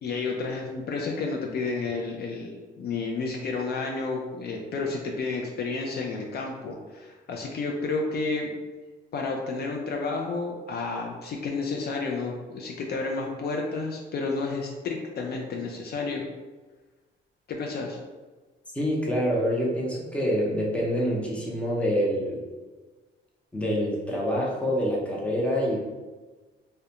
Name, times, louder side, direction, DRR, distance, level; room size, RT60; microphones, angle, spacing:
voice 1, 0.0-8.5 9.1-16.2 17.5-18.0, left 3 dB, 55° left, 0 dB, 0.4 m, -31 dB
voice 2, 18.7-22.4 23.5-25.8, equal, 5° left, -3 dB, 0.6 m, -26 dB
2.4 x 2.1 x 2.8 m, 1.3 s
cardioid pair, 90°, 20 cm